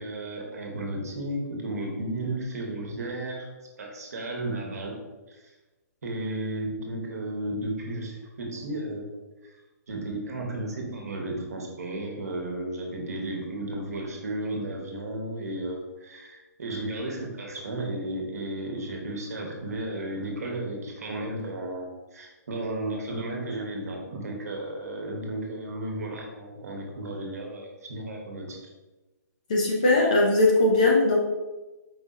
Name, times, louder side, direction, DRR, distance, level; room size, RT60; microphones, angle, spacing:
voice 1, 0.0-3.5 3.8-4.9 5.3-5.4 6.0-9.0 9.4-9.5 9.9-21.9 22.1-28.6, right 1 dB, 60° right, 0 dB, 1.2 m, -33 dB
voice 2, 29.5-31.2, left 2 dB, 25° left, -1 dB, 0.5 m, -20 dB
4.8 x 2.7 x 3.7 m, 1.1 s
hypercardioid pair, 180°, 9 cm